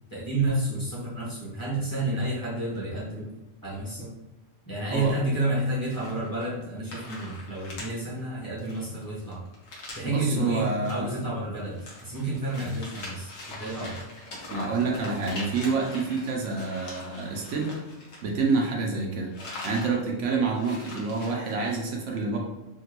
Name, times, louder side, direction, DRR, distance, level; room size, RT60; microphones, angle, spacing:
voice 1, 0.1-3.3 3.6-4.1 4.7-9.4 9.9-14.0, right 1 dB, 20° left, -8 dB, 0.9 m, -30 dB
sound 1, 5.8-6.6 6.9-7.9 8.2-8.3 8.6-10.2 10.7-10.9 11.3-18.7 19.0-19.9 20.2-20.3 20.5-21.8, left 2 dB, 90° left, 1.3 m, -42 dB
voice 2, 10.1-11.1 14.5-17.7 18.2-22.4, right 4 dB, 75° right, 0 dB, 0.9 m, -28 dB
3.6 x 2.2 x 2.9 m, 1.0 s
omnidirectional pair, 1.3 m